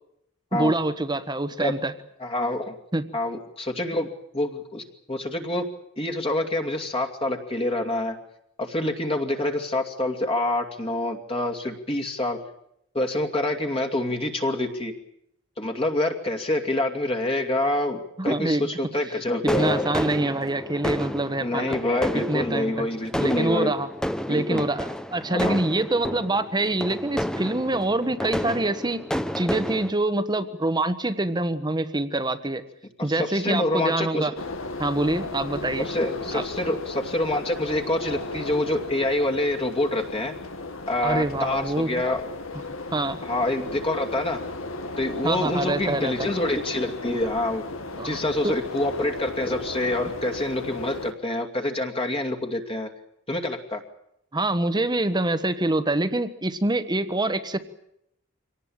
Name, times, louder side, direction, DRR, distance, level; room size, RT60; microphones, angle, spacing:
voice 1, 0.5-1.9 2.9-3.0 18.2-18.7 19.6-21.7 22.3-22.9 23.1-23.9 24.3-29.0 29.3-32.6 33.0-34.3 34.8-35.9 36.3-36.4 41.0-41.9 42.9-43.2 45.2-46.3 48.0-48.2 48.4-48.5 54.3-57.6, right 2 dB, 20° right, 11 dB, 1.2 m, -25 dB
voice 2, 2.2-2.7 3.1-4.1 4.3-5.6 6.0-8.2 8.6-12.4 12.9-14.9 15.6-19.8 21.4-23.7 24.3-24.7 25.3-25.6 33.1-34.3 35.8-40.3 40.9-42.2 43.2-44.4 45.0-47.6 48.0-52.9 53.3-53.8, left 1 dB, 30° left, 4 dB, 2.6 m, -26 dB
sound 1, 19.5-29.9, equal, 5° left, 0.9 m, -31 dB
sound 2, 34.4-51.1, left 2 dB, 90° left, 2.0 m, -35 dB
25.0 x 18.5 x 8.8 m, 0.77 s
head